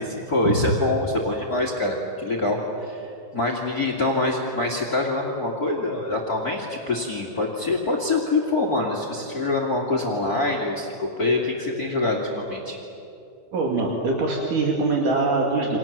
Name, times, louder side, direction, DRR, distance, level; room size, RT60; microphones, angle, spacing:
voice 1, 0.0-12.8, left 2 dB, 30° left, 0 dB, 2.7 m, -25 dB
voice 2, 13.5-15.8, right 3 dB, 75° right, -1 dB, 4.0 m, -23 dB
29.5 x 26.5 x 7.5 m, 2.7 s
omnidirectional pair, 3.7 m